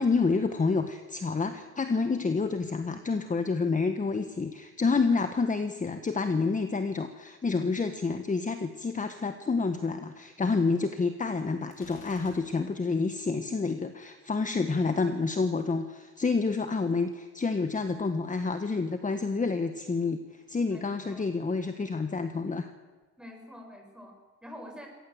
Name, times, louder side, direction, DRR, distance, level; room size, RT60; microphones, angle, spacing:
voice 1, 0.0-22.7, left 4 dB, 25° left, 8 dB, 1.5 m, -28 dB
Gunshot gunfire, 11.7-12.9, left 5 dB, 80° left, 6.3 m, -53 dB
voice 2, 20.7-21.3 23.2-24.9, equal, 5° right, 2 dB, 7.2 m, -47 dB
24.0 x 18.0 x 8.0 m, 1.3 s
cardioid pair, 90°, 30 cm